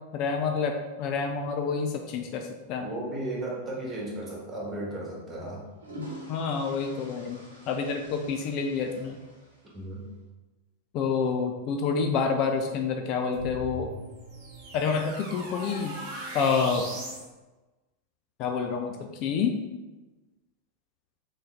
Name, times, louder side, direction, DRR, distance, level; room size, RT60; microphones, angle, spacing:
voice 1, 0.1-2.9 6.0-7.4 7.7-9.2 10.9-13.9 14.7-15.9 16.3-16.8 18.4-19.6, left 5 dB, 40° left, 4 dB, 0.4 m, -28 dB
voice 2, 2.8-5.6 9.7-10.0, right 1 dB, 25° right, -4 dB, 1.5 m, -35 dB
sound 1, 5.6-10.0, right 1 dB, 75° right, 1.0 m, -47 dB
sound 2, 13.3-17.3, right 1 dB, 45° right, 1.0 m, -39 dB
3.9 x 3.7 x 3.3 m, 1.1 s
figure-of-eight pair, 90°, 0 cm